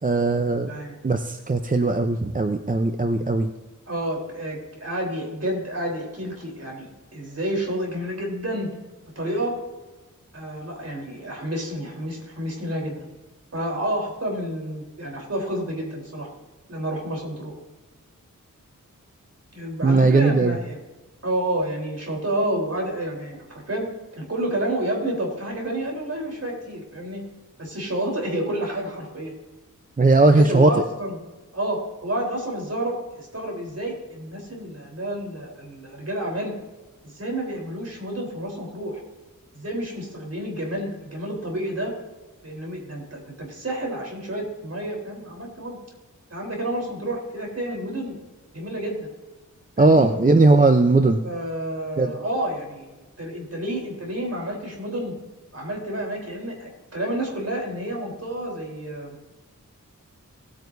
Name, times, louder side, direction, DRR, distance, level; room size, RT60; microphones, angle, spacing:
voice 1, 0.0-0.7 1.0-3.5 19.8-20.6 30.0-30.7 49.8-51.2 52.0-52.1, right 3 dB, 25° right, 6 dB, 0.7 m, -18 dB
voice 2, 3.9-8.7 9.2-9.6 10.3-13.1 13.5-16.3 16.7-17.5 19.5-20.8 21.2-23.9 24.2-27.2 27.6-29.3 30.1-31.2 31.5-36.5 37.0-39.0 39.5-41.9 42.4-45.8 46.3-48.2 48.5-49.1 49.8-50.1 51.2-52.9 53.2-55.1 55.5-59.2, right 1 dB, 50° right, -1 dB, 3.8 m, -29 dB
18.5 x 9.2 x 2.7 m, 1.2 s
wide cardioid pair, 80°, 31 cm